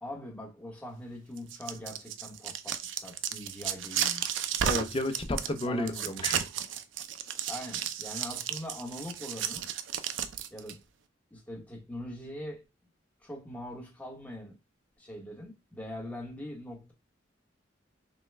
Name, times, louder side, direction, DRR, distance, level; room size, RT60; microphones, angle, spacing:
voice 1, 0.0-4.5 5.7-6.1 7.5-9.7 10.5-10.8 11.3-12.7 13.2-14.6 15.0-16.9, left 1 dB, 10° left, 1.0 m, -42 dB
sound 1, 1.4-10.7, right 9 dB, 80° right, 0.4 m, -33 dB
voice 2, 4.6-6.5, left 1 dB, 30° left, 0.6 m, -32 dB
5.3 x 2.2 x 3.3 m
head